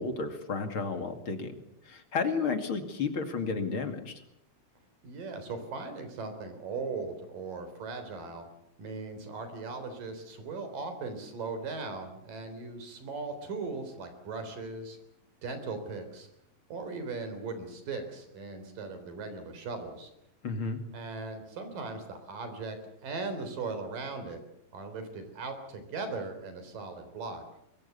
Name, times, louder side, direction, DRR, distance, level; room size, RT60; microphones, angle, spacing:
voice 1, 0.0-1.5 1.9-4.2 20.4-20.8, left 4 dB, 40° left, 7 dB, 2.8 m, -32 dB
voice 2, 5.0-8.5 8.8-15.0 15.4-16.3 16.7-20.1 20.9-22.8 23.0-24.4 24.7-27.4, right 4 dB, 85° right, 8 dB, 5.3 m, -38 dB
23.0 x 21.5 x 8.1 m, 0.80 s
omnidirectional pair, 3.8 m